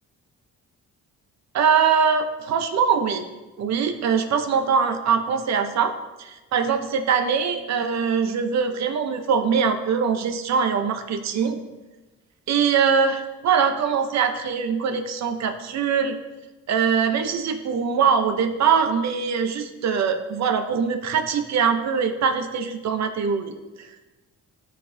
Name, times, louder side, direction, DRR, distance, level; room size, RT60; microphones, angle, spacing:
voice 1, 1.5-3.3 3.6-5.9 6.2-11.6 12.5-16.1 16.7-23.5, right 6 dB, 65° right, 7 dB, 0.8 m, -22 dB
12.0 x 4.1 x 2.7 m, 1.1 s
cardioid pair, 90°, 30 cm